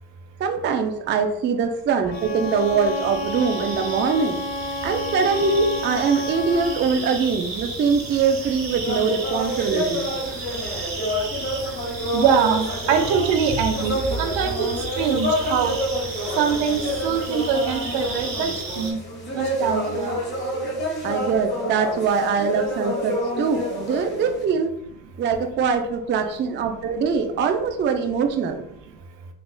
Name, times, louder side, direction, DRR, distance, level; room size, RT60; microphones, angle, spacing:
voice 1, 0.4-4.4 4.8-10.1 21.0-24.8 25.2-28.6, right 5 dB, 25° right, 5 dB, 0.4 m, -23 dB
Bowed string instrument, 2.0-6.9, left 2 dB, 60° left, 0.7 m, -31 dB
sound 1, 2.1-18.9, right 3 dB, 45° right, 1.1 m, -33 dB
sound 2, 8.8-24.4, left 1 dB, 25° left, 1.4 m, -28 dB
voice 2, 12.1-14.7 15.0-15.8 16.4-18.5 18.8-19.0 19.3-20.2, right 7 dB, 70° right, 5 dB, 0.6 m, -23 dB
3.5 x 2.4 x 2.4 m, 0.78 s
supercardioid pair, 70°, 46 cm